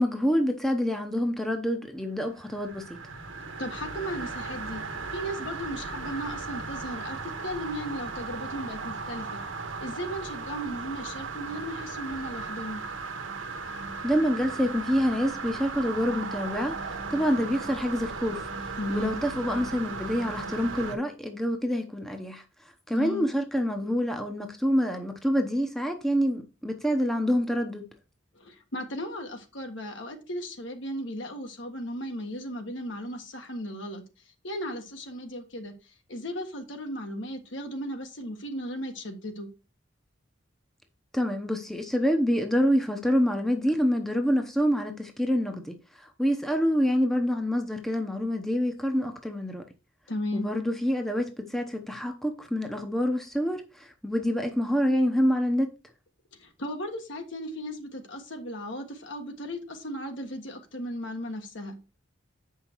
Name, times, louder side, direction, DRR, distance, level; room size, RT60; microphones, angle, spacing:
voice 1, 0.0-3.0 14.0-18.5 18.9-22.4 22.9-27.9 41.1-49.6 50.3-55.7, equal, ahead, 0.8 m, -27 dB
sound 1, 2.3-21.0, right 4 dB, 85° right, 1.2 m, -37 dB
voice 2, 3.6-4.8 5.1-9.4 9.8-12.8 18.8-19.2 22.9-23.3 28.3-34.0 34.4-39.5 50.1-50.5 56.4-61.8, equal, 70° left, 1.5 m, -36 dB
7.7 x 5.6 x 4.5 m
head